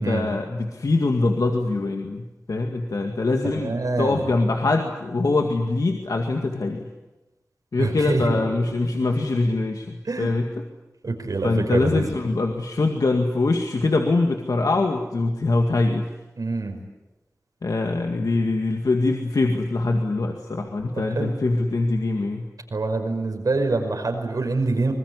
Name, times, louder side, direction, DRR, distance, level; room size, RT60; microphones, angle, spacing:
voice 1, 0.0-3.7 4.0-6.9 7.7-10.5 11.4-16.1 17.6-22.5, left 3 dB, 90° left, 3 dB, 2.1 m, -23 dB
voice 2, 3.4-4.3 7.8-8.4 10.0-10.4 11.0-12.0 16.4-16.7 20.9-21.3 22.7-24.9, right 3 dB, 85° right, 4 dB, 5.4 m, -25 dB
25.5 x 21.5 x 9.7 m, 1.1 s
wide cardioid pair, 60°, 6 cm